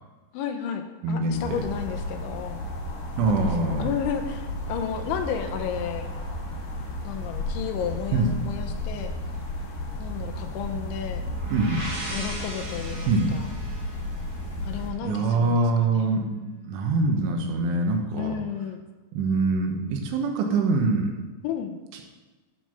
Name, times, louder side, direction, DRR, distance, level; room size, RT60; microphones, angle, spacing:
voice 1, 0.3-2.7 3.4-6.1 7.0-9.1 10.0-11.2 12.1-13.5 14.6-16.1 18.2-18.9 21.4-21.8, left 8 dB, 80° left, 5 dB, 3.0 m, -32 dB
voice 2, 1.0-1.6 3.2-3.9 8.1-8.4 11.5-11.8 13.1-13.4 15.0-18.3 19.1-21.2 21.9-22.0, right 3 dB, 85° right, 3 dB, 3.6 m, -24 dB
sound 1, 1.3-14.9, left 1 dB, 60° left, 2.4 m, -33 dB
sound 2, 11.1-14.9, right 1 dB, 45° right, 1.4 m, -38 dB
12.5 x 4.7 x 5.9 m, 1.2 s
omnidirectional pair, 5.7 m